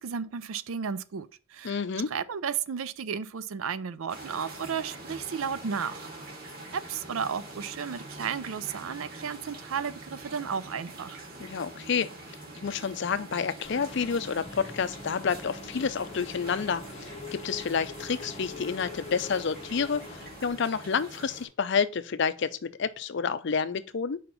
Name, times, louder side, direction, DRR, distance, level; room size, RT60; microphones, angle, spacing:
voice 1, 0.0-1.8 2.1-6.1 6.7-11.2, right 6 dB, 75° right, 0.5 m, -33 dB
voice 2, 1.6-2.1 11.4-12.1 12.6-24.2, left 6 dB, 55° left, 0.4 m, -29 dB
sound 1, 4.1-21.5, right 2 dB, 45° right, 2.0 m, -45 dB
Engine / Mechanisms, 13.6-20.5, left 3 dB, 30° left, 0.8 m, -43 dB
4.9 x 4.3 x 5.5 m
head